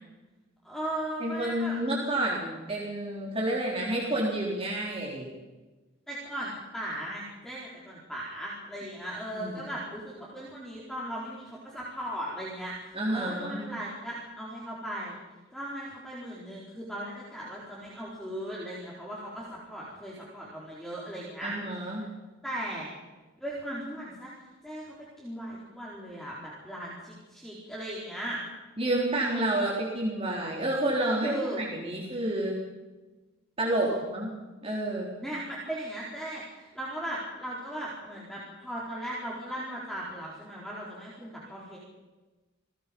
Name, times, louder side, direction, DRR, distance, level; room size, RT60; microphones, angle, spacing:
voice 1, 0.6-1.8 6.1-15.2 15.5-21.6 22.4-22.9 23.4-24.3 24.6-28.4 31.2-31.6 33.8-34.0 35.2-41.8, right 1 dB, ahead, -6 dB, 4.7 m, -37 dB
voice 2, 1.2-5.3 9.3-9.6 12.9-13.6 21.4-22.1 28.8-32.6 33.6-34.3 34.6-35.1, right 1 dB, 30° right, -3 dB, 3.9 m, -29 dB
28.5 x 20.0 x 5.5 m, 1.2 s
head